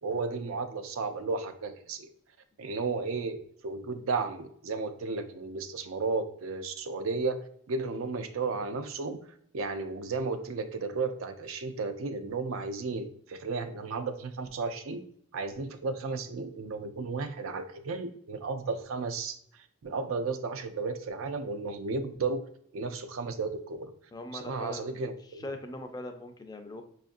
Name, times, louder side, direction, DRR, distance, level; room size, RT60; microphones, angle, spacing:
voice 1, 0.0-2.1 2.6-3.4 3.6-9.2 9.5-15.0 15.3-19.4 19.8-22.4 22.7-23.9 24.3-25.5, right 4 dB, 75° right, 8 dB, 0.4 m, -33 dB
voice 2, 24.1-25.0 25.4-26.8, left 2 dB, 20° left, 5 dB, 0.4 m, -40 dB
5.3 x 2.5 x 2.5 m, 0.64 s
head